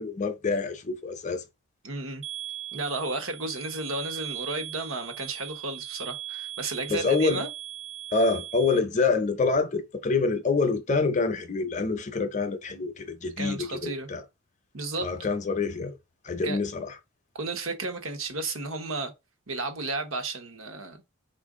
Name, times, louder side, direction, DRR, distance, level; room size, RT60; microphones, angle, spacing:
voice 1, 0.0-1.4 6.9-7.4 8.1-14.2 15.0-15.9 16.2-17.0, left 4 dB, 35° left, 0.5 m, -26 dB
voice 2, 1.8-2.2 2.7-7.5 13.4-14.1 14.7-15.1 16.4-16.6 17.3-19.1 19.5-21.0, right 2 dB, 75° right, 1.0 m, -33 dB
sound 1, 2.2-8.8, right 13 dB, 30° right, 0.4 m, -39 dB
4.6 x 2.5 x 3.6 m
head